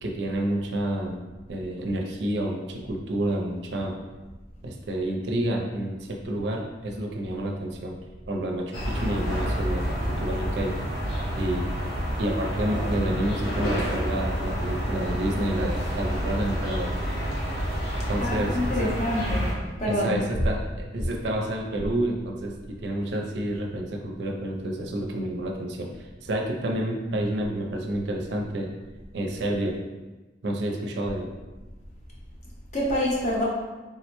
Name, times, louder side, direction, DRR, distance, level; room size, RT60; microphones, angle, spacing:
voice 1, 0.0-1.2 1.5-4.0 4.6-8.0 8.3-10.8 11.3-11.7 12.2-17.0 18.1-18.9 19.9-28.7 29.1-29.8 30.4-31.3, right 1 dB, 65° right, 1 dB, 0.4 m, -29 dB
sound 1, 8.7-19.5, equal, 65° left, 0.9 m, -28 dB
voice 2, 18.2-19.5 19.8-20.3 32.7-33.5, left 1 dB, 40° left, -4 dB, 0.7 m, -26 dB
3.5 x 2.1 x 2.9 m, 1.2 s
head